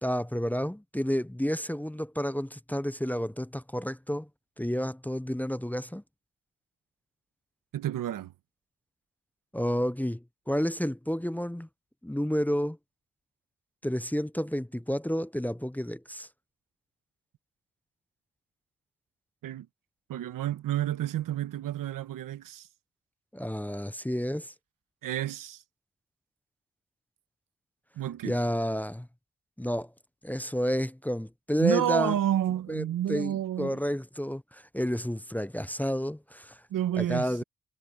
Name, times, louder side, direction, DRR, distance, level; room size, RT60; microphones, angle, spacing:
voice 1, 0.0-4.3 4.6-6.0 9.5-11.7 12.0-12.8 13.8-16.3 23.3-24.5 28.2-29.1 29.6-29.9 30.2-32.1 32.7-36.6 37.0-37.4, equal, 5° left, 0.8 m, -30 dB
voice 2, 7.7-8.3 19.4-19.7 20.1-22.7 25.0-25.6 28.0-28.3 31.6-33.8 36.7-37.4, right 12 dB, 85° right, 1.3 m, -30 dB
supercardioid pair, 45°, 32 cm